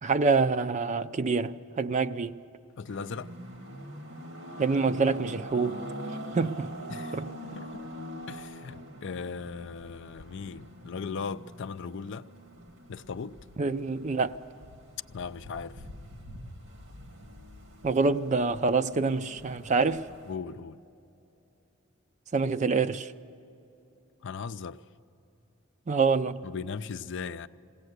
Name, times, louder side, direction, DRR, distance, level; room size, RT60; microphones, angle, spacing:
voice 1, 0.0-2.4 4.6-5.9 6.3-6.7 7.1-7.3 13.6-14.4 17.8-20.1 22.3-23.1 25.9-26.4, right 4 dB, 35° right, 0.5 m, -26 dB
voice 2, 2.8-3.3 6.9-7.2 7.4-7.9 8.3-12.3 12.9-13.4 15.1-15.8 20.3-20.8 24.2-24.8 26.4-27.5, left 5 dB, 60° left, 0.5 m, -38 dB
sound 1, 2.9-20.4, equal, 80° right, 2.0 m, -44 dB
21.0 x 17.0 x 8.0 m
head